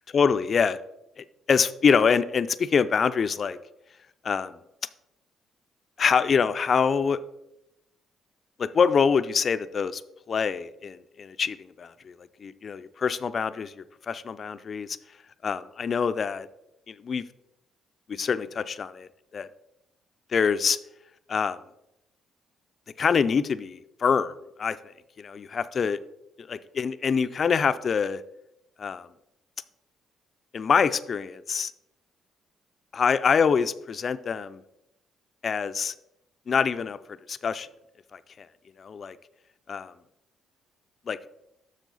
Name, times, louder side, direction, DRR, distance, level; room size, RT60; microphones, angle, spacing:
voice 1, 0.1-0.8 1.2-3.6 4.2-4.5 6.0-7.2 8.6-10.0 10.3-11.9 12.4-13.7 14.1-15.0 15.4-16.5 16.9-17.2 18.1-19.1 19.3-19.5 20.3-20.8 21.3-21.6 23.0-24.8 25.2-26.0 26.7-28.2 28.8-29.1 30.5-31.7 32.9-34.6 35.4-35.9 36.5-37.0 37.3-37.7 38.1-38.5 38.8-39.2 39.7-39.9 41.1-41.2, left 6 dB, 45° left, 13 dB, 0.4 m, -25 dB
7.3 x 6.4 x 3.9 m, 0.87 s
cardioid pair, 90°, 0 cm